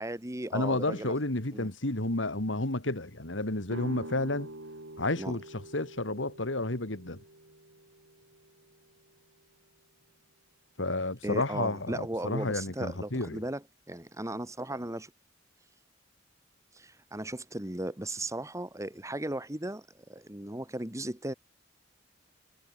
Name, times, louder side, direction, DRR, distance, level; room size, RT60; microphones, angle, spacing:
voice 1, 0.0-1.1 1.5-1.7 5.2-5.4 11.2-15.1 16.8-21.3, right 1 dB, 15° right, 2.4 m, -36 dB
voice 2, 0.5-4.5 5.0-5.4 5.7-7.2 10.8-13.4, left 2 dB, 75° left, 2.9 m, -31 dB
sound 1, 3.7-9.4, right 1 dB, 85° right, 5.7 m, -46 dB
head